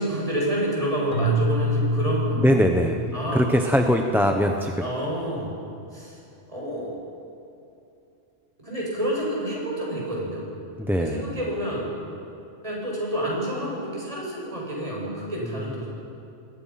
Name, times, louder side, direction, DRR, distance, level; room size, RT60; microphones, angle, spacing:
voice 1, 0.0-2.5 3.1-3.4 4.8-5.6 5.9-6.2 6.5-7.0 8.6-10.4 10.9-11.9 12.6-15.9, right 1 dB, 30° right, -4 dB, 7.3 m, -28 dB
Keyboard (musical), 1.1-4.2, right 1 dB, 45° left, 2.1 m, -27 dB
voice 2, 2.4-3.0 3.3-4.9 10.8-11.2, equal, ahead, 3 dB, 1.0 m, -21 dB
28.5 x 20.5 x 5.9 m, 2.7 s
omnidirectional pair, 1.2 m